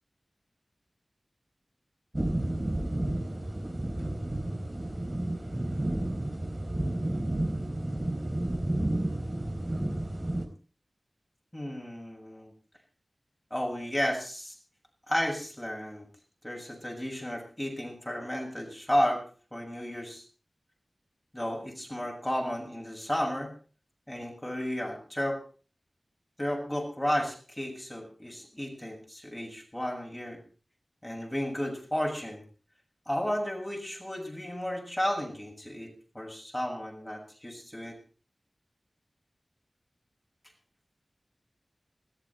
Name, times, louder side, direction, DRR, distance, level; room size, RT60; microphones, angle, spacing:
sound 1, 2.1-10.5, right 1 dB, 30° right, 4.0 m, -31 dB
voice 1, 11.5-12.5 13.5-14.6 15.1-16.1 16.4-19.2 19.5-20.2 21.3-23.5 24.1-25.4 26.4-30.4 31.0-32.4 33.1-38.0, equal, 15° left, 1 dB, 7.2 m, -33 dB
20.5 x 14.5 x 4.4 m, 0.39 s
wide cardioid pair, 55°, 0 cm